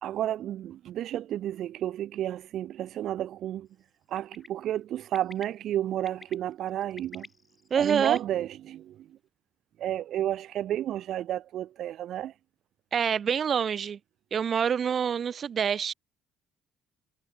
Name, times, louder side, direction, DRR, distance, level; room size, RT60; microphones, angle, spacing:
voice 1, 0.0-3.7 4.1-7.3 7.8-9.2 9.8-12.3, right 12 dB, 45° right, 0.7 m, -31 dB
Bird, 4.1-4.5 5.1-5.4 6.0-6.3 6.8-8.2, left 3 dB, 10° left, 0.8 m, -46 dB
voice 2, 7.7-8.2 12.9-14.0 14.3-15.9, right 7 dB, 30° right, 1.2 m, -26 dB
cardioid pair, 170°, 0 cm